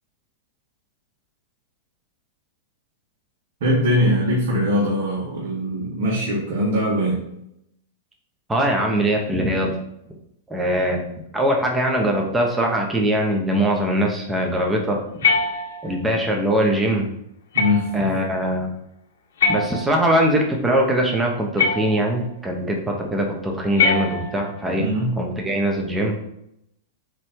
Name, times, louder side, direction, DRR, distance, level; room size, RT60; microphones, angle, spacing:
voice 1, 3.6-7.2 17.5-18.1 24.8-25.2, equal, 70° right, -5 dB, 2.2 m, -21 dB
voice 2, 8.5-9.8 10.5-11.0 11.3-15.0 15.8-17.1 17.9-18.7 19.5-24.9 25.2-26.2, right 1 dB, 5° right, 0 dB, 0.9 m, -21 dB
sound 1, 15.2-16.1 17.5-18.1 19.4-20.3 21.6-22.3 23.8-24.6, left 5 dB, 90° left, 1.3 m, -23 dB
8.2 x 3.3 x 4.5 m, 0.79 s
supercardioid pair, 155°, 0 cm